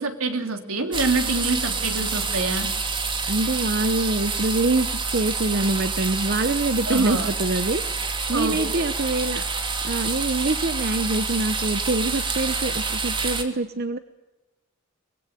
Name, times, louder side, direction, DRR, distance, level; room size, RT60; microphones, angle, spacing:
voice 1, 0.0-2.7 6.9-7.3 8.3-8.9, right 3 dB, 85° right, 6 dB, 3.3 m, -26 dB
sound 1, 0.9-13.4, right 4 dB, 25° right, 2.5 m, -27 dB
voice 2, 3.3-8.0 8.3-9.5 9.8-14.0, right 2 dB, 50° right, 11 dB, 0.9 m, -25 dB
23.5 x 21.0 x 9.0 m, 1.1 s
head